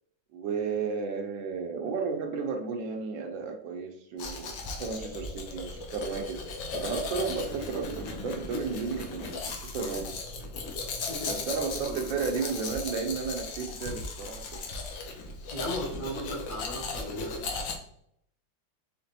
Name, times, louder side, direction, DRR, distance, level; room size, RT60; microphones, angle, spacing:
voice 1, 0.3-10.1 11.3-14.4, right 5 dB, 75° right, 3 dB, 1.3 m, -33 dB
Domestic sounds home sounds, 4.2-17.8, left 3 dB, 70° left, 1.4 m, -37 dB
voice 2, 11.0-12.1 15.5-17.4, equal, 55° left, -4 dB, 1.6 m, -37 dB
5.1 x 3.3 x 2.7 m, 0.70 s
omnidirectional pair, 2.2 m